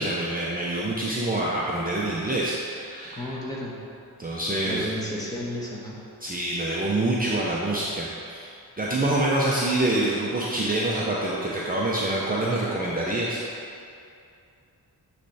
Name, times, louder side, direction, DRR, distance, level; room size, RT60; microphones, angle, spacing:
voice 1, 0.0-3.3 4.2-4.9 6.2-13.4, right 1 dB, 20° right, -6 dB, 0.7 m, -26 dB
voice 2, 3.1-3.7 4.6-6.0, left 1 dB, 10° left, -5 dB, 1.4 m, -32 dB
9.8 x 3.4 x 4.2 m, 2.5 s
wide cardioid pair, 90°, 38 cm